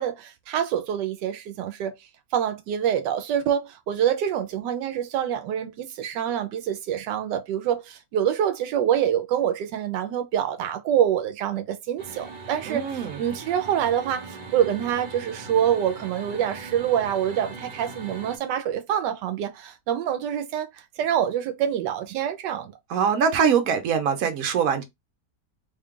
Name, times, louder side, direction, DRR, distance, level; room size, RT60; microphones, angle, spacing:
voice 1, 0.0-1.9 2.3-22.7, right 9 dB, 85° right, 1.2 m, -26 dB
sound 1, 12.0-18.4, right 4 dB, 40° right, 0.8 m, -40 dB
voice 2, 12.7-13.2 22.9-24.8, right 7 dB, 60° right, 1.1 m, -23 dB
3.7 x 2.3 x 3.6 m
omnidirectional pair, 1.8 m